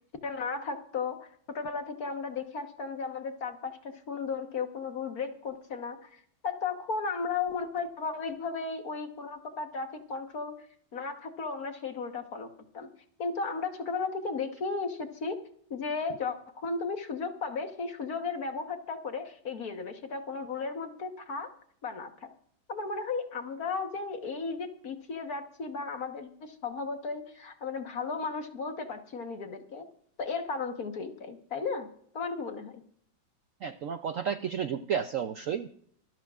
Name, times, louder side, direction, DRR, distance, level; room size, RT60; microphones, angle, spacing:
voice 1, 0.2-10.6 10.9-12.5 12.7-12.9 13.2-15.4 15.7-21.5 21.8-22.3 22.7-29.9 30.2-31.9 32.1-32.8, left 4 dB, 55° left, 6 dB, 1.6 m, -35 dB
voice 2, 33.6-35.7, right 8 dB, 80° right, 9 dB, 0.7 m, -32 dB
25.5 x 12.5 x 2.4 m, 0.65 s
omnidirectional pair, 2.1 m